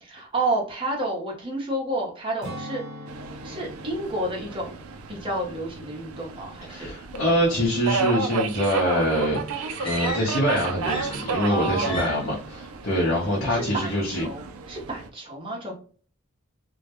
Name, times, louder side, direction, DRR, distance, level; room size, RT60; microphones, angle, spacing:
voice 1, 0.0-2.8 3.4-4.7 5.1-6.9 11.5-12.2 13.5-15.7, right 1 dB, 25° right, -3 dB, 0.6 m, -30 dB
Strum, 2.4-7.1 7.5-7.7, equal, 60° right, 0.7 m, -43 dB
Subway metro underground, 3.1-15.1, right 5 dB, 85° right, 0.3 m, -33 dB
voice 2, 6.7-14.2, equal, 60° left, -6 dB, 0.7 m, -25 dB
sound 1, 9.8-10.5 10.8-11.5 11.8-12.4, left 2 dB, 25° left, 0.3 m, -35 dB
2.2 x 2.0 x 2.8 m, 0.41 s
head